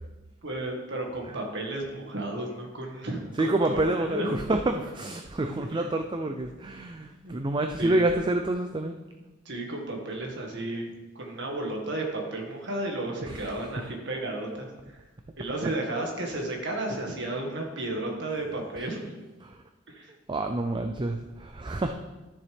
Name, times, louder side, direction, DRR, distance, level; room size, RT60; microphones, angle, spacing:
voice 1, 0.4-4.3 4.8-4.9 5.6-5.9 6.3-6.4 7.2-7.4 7.8-8.1 9.5-10.9 11.2-15.0 15.4-19.1 19.9-20.1, right 2 dB, 65° right, 1 dB, 1.9 m, -33 dB
voice 2, 3.4-9.0 13.3-13.4 15.9-16.1 19.5-19.6 20.3-21.9, right 2 dB, 25° right, 6 dB, 0.4 m, -28 dB
13.0 x 6.8 x 3.5 m, 1.1 s
head